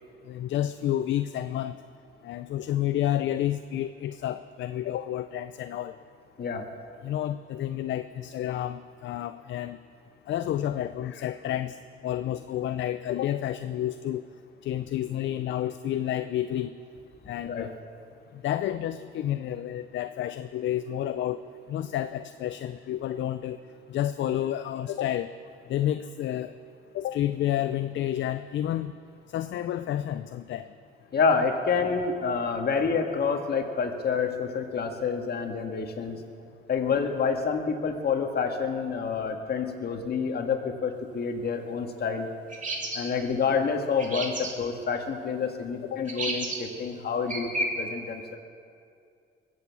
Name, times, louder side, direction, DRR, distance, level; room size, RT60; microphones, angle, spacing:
voice 1, 0.3-1.8 2.2-5.9 7.0-9.8 10.3-11.8 12.0-14.2 14.6-16.7 17.3-17.7 18.4-21.4 21.7-23.6 23.9-25.3 25.7-26.5 26.9-28.9 29.3-30.7 45.9-46.0, left 12 dB, 70° left, 11 dB, 0.5 m, -30 dB
voice 2, 6.4-6.7 17.4-17.7 31.1-36.2 36.7-42.3 42.9-48.4, left 5 dB, 55° left, 4 dB, 1.8 m, -28 dB
sound 1, 42.5-43.0 44.0-44.5 46.1-46.6 47.3-47.7, right 2 dB, 40° right, 2.5 m, -31 dB
22.0 x 8.6 x 7.1 m, 2.3 s
cardioid pair, 90°, 20 cm